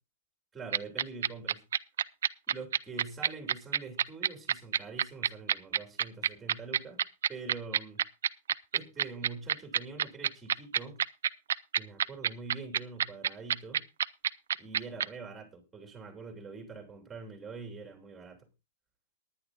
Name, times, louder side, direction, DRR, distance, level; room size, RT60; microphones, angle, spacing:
voice 1, 0.5-1.6 2.5-7.0 7.3-8.0 8.7-11.0 11.8-13.8 14.6-18.5, right 4 dB, 10° right, 3.2 m, -44 dB
sound 1, 0.7-15.1, right 9 dB, 90° right, 0.6 m, -27 dB
19.5 x 10.5 x 2.7 m
supercardioid pair, 165°, 0 cm